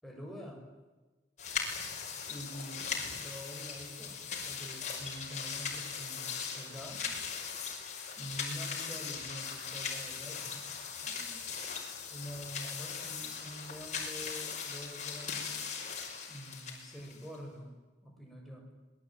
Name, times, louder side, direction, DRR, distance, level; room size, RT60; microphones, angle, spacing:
voice 1, 0.0-0.6 2.3-7.1 8.2-10.6 11.0-11.5 12.1-15.7 16.3-17.7 18.0-18.7, equal, ahead, -1 dB, 7.4 m, -46 dB
sound 1, 1.4-17.4, left 6 dB, 40° left, 5.6 m, -39 dB
26.0 x 21.0 x 9.1 m, 1.2 s
head